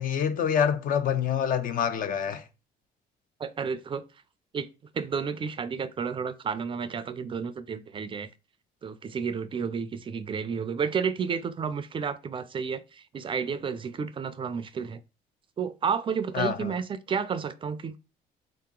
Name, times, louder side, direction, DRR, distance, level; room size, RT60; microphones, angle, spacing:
voice 1, 0.0-2.4 16.3-16.8, left 8 dB, 55° left, 0.6 m, -26 dB
voice 2, 3.4-4.0 4.5-4.7 4.9-8.3 8.8-15.0 15.6-18.0, right 6 dB, 30° right, 0.4 m, -31 dB
3.7 x 2.8 x 3.7 m
cardioid pair, 110°, 17 cm